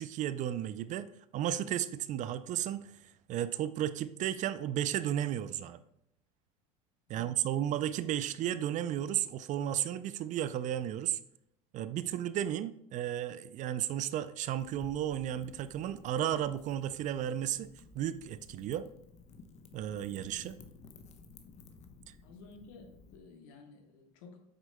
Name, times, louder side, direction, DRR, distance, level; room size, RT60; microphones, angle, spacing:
voice 1, 0.0-2.9 3.3-5.8 7.1-11.2 11.7-17.7 17.9-18.9 19.7-20.6, right 11 dB, 40° right, 14 dB, 0.4 m, -33 dB
Wind / Fire, 14.6-23.2, left 4 dB, 40° left, 0.9 m, -55 dB
voice 2, 22.2-24.4, left 4 dB, 65° left, 4 dB, 1.4 m, -53 dB
8.1 x 6.1 x 2.2 m, 0.77 s
hypercardioid pair, 80°, 19 cm